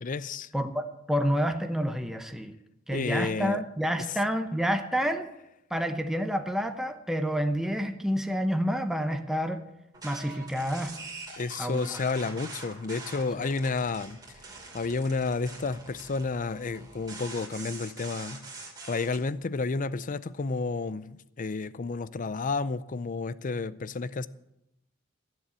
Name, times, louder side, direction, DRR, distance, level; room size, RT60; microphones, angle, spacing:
voice 1, 0.0-0.5 2.9-3.6 11.4-14.2 14.7-24.3, left 4 dB, 40° left, 0.5 m, -31 dB
voice 2, 0.5-2.5 2.9-5.3 5.7-9.6 10.0-11.0 11.6-12.0 13.4-13.5, equal, ahead, 0.8 m, -29 dB
sound 1, 9.9-19.2, right 3 dB, 20° right, 2.5 m, -44 dB
14.5 x 7.6 x 8.2 m
head